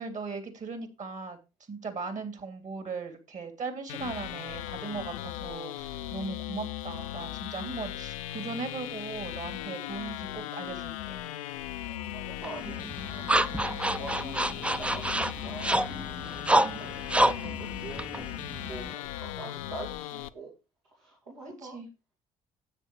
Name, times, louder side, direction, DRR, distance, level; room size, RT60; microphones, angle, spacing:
voice 1, 0.0-1.4 1.7-11.2 16.6-16.8 21.6-21.9, right 4 dB, 45° right, 8 dB, 3.0 m, -38 dB
sound 1, 3.9-20.3, left 14 dB, 85° left, 0.5 m, -38 dB
voice 2, 11.9-15.9 16.8-18.3 18.7-20.5 20.9-21.8, right 3 dB, 90° right, -5 dB, 3.2 m, -44 dB
sound 2, 12.4-18.9, right 1 dB, 5° right, 0.5 m, -28 dB
9.9 x 8.2 x 4.5 m, 0.28 s
hypercardioid pair, 50°, 17 cm